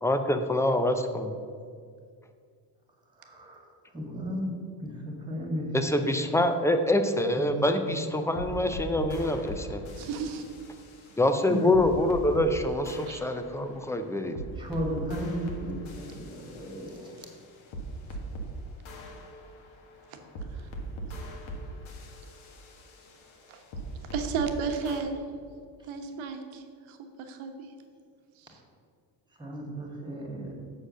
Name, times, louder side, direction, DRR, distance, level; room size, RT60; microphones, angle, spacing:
voice 1, 0.0-1.3 5.7-9.8 11.2-14.4, left 1 dB, 5° left, 7 dB, 0.5 m, -26 dB
voice 2, 3.2-3.7 3.9-4.5 4.8-6.3 7.3-8.5 11.4-11.9 14.6-17.1 29.4-30.5, right 1 dB, 10° right, 0 dB, 1.8 m, -35 dB
sound 1, 8.1-12.5 12.9-18.5 18.9-24.5 24.9-25.0, right 2 dB, 80° left, 1.7 m, -41 dB
voice 3, 10.0-10.4 13.1-13.2 20.1-20.2 20.5-20.6 23.5-23.6 24.1-25.2 25.8-27.5 28.4-28.5, right 5 dB, 80° right, 5 dB, 1.3 m, -33 dB
7.6 x 6.5 x 6.3 m, 2.1 s
cardioid pair, 135°, 47 cm